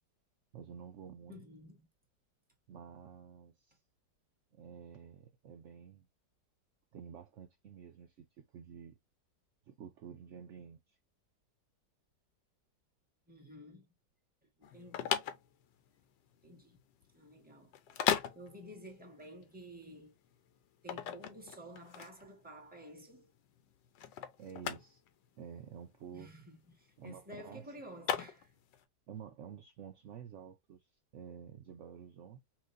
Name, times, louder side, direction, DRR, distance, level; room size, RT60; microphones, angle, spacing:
voice 1, 0.5-1.4 2.7-3.8 4.5-6.1 6.9-9.0 9.7-11.0 24.4-25.0 25.4-26.3 27.0-27.7 29.1-32.4, right 8 dB, 65° right, 0.7 m, -50 dB
voice 2, 1.3-1.8 13.3-13.9 14.6-15.1 16.4-16.8 17.1-18.0 18.3-20.1 20.8-23.3 26.1-28.5, equal, 5° right, 1.5 m, -52 dB
sound 1, 14.6-28.8, left 10 dB, 80° left, 1.4 m, -38 dB
5.8 x 2.6 x 2.6 m
omnidirectional pair, 1.9 m